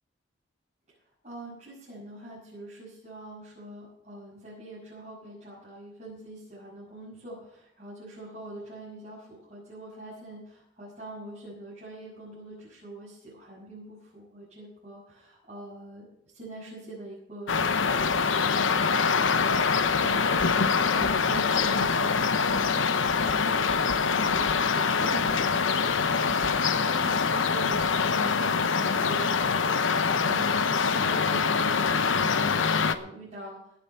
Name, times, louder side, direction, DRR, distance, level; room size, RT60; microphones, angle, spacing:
voice 1, 1.2-16.1 16.3-19.0 19.9-33.7, right 1 dB, 35° right, -9 dB, 6.5 m, -44 dB
sound 1, 17.5-33.0, left 5 dB, 90° left, 0.8 m, -24 dB
18.0 x 7.8 x 5.7 m, 0.78 s
head